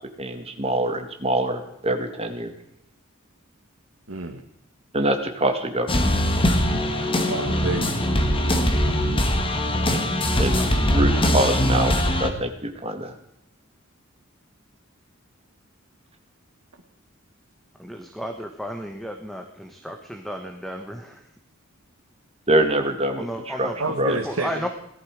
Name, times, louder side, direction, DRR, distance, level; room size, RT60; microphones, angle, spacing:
voice 1, 0.2-2.5 4.9-6.0 10.4-13.1 22.5-23.7 24.0-24.2, right 1 dB, 30° right, 6 dB, 2.1 m, -24 dB
voice 2, 4.1-4.4 6.9-8.2 23.8-24.7, right 3 dB, 80° right, 2 dB, 1.6 m, -30 dB
sound 1, 5.9-12.3, equal, 25° left, 1.9 m, -21 dB
voice 3, 17.8-21.2 23.2-23.8 24.2-24.7, equal, ahead, 4 dB, 1.2 m, -33 dB
18.5 x 13.0 x 4.9 m, 0.78 s
head